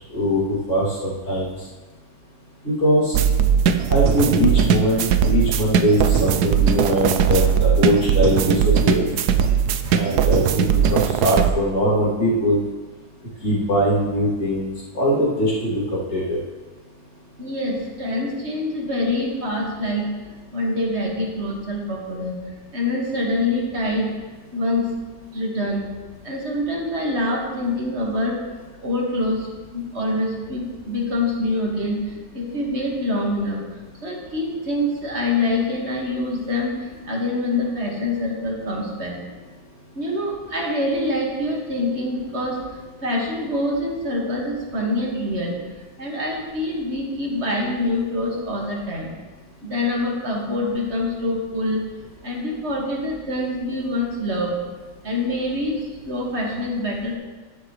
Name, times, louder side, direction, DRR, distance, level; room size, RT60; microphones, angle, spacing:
voice 1, 0.1-1.5 2.6-3.1 3.9-9.0 9.9-12.6 13.4-15.8 16.1-16.4, equal, 45° left, -6 dB, 3.2 m, -21 dB
sound 1, 3.1-11.5, right 8 dB, 70° right, 1.1 m, -19 dB
voice 2, 17.4-20.1 20.5-22.4 22.7-24.1 24.5-24.9 25.3-25.9 26.2-28.4 28.8-29.5 29.7-33.6 34.0-39.2 40.0-42.6 43.0-45.6 46.0-49.1 49.6-51.8 52.2-54.6 55.0-57.1, left 1 dB, 40° right, -1 dB, 2.1 m, -25 dB
11.5 x 11.5 x 3.2 m, 1.3 s
omnidirectional pair, 1.9 m